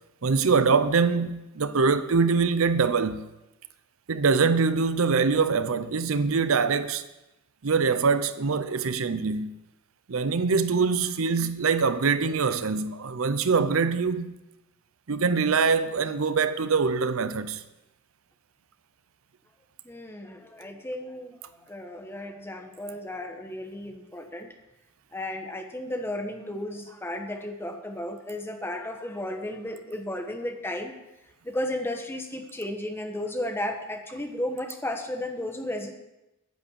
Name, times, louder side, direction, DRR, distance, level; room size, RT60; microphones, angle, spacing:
voice 1, 0.2-3.3 4.1-7.0 7.6-9.5 10.1-14.3 15.1-17.6, right 5 dB, 70° right, 0.6 m, -24 dB
voice 2, 19.8-21.4 21.7-24.5 25.1-30.9 31.4-35.9, left 1 dB, 10° left, 1.2 m, -34 dB
10.5 x 8.5 x 8.6 m
head